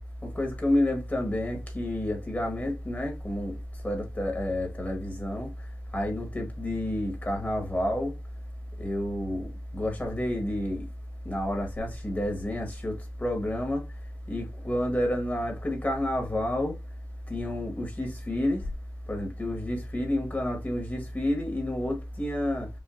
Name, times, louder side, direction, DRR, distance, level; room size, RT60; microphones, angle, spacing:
voice 1, 0.2-3.6 3.8-5.5 5.9-8.1 8.8-10.9 11.2-13.8 14.3-16.8 17.3-18.7 19.1-22.7, left 1 dB, 25° left, 1.4 m, -29 dB
5.3 x 2.4 x 2.5 m
wide cardioid pair, 125°, 6 cm